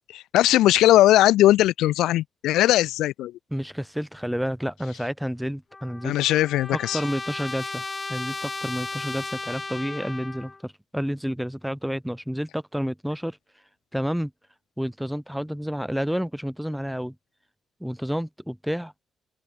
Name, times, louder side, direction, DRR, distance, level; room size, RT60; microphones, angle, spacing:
voice 1, 0.1-3.3 6.0-7.0, left 14 dB, 85° left, 1.6 m, -19 dB
voice 2, 3.5-6.2 6.7-7.8 8.1-13.4 13.9-14.3 14.8-17.1 17.8-18.9, equal, ahead, 5.9 m, -30 dB
Trumpet, 5.7-10.6, left 3 dB, 25° left, 4.8 m, -35 dB
open air
cardioid pair, 90°, 0 cm